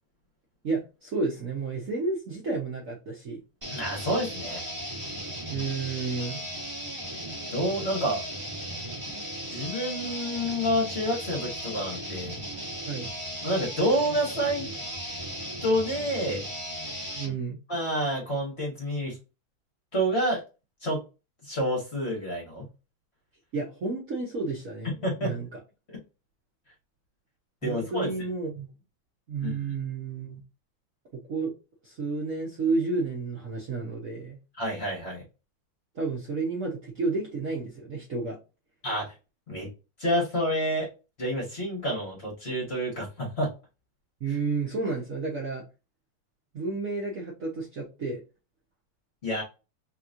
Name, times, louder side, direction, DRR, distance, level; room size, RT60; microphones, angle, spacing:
voice 1, 0.6-3.4 5.5-6.4 12.9-13.1 17.1-17.6 23.5-24.9 25.2-25.5 27.6-28.7 29.3-30.4 31.3-31.5 31.8-34.4 35.9-38.4 44.2-45.6 46.5-48.2, right 3 dB, 55° right, -3 dB, 1.0 m, -31 dB
sound 1, 3.6-17.3, equal, 20° right, 1.1 m, -36 dB
voice 2, 3.7-4.6 7.5-8.2 9.5-12.4 13.4-14.7 15.6-16.4 17.7-19.2 19.9-20.4 20.8-21.0 21.4-22.6 25.0-25.4 25.9-26.0 27.6-28.1 29.4-29.6 34.6-35.2 38.8-39.1 39.5-39.7 40.0-40.9 41.2-43.5 49.2-49.4, equal, 35° left, -2 dB, 1.4 m, -28 dB
3.4 x 3.0 x 2.5 m, 0.29 s
omnidirectional pair, 2.3 m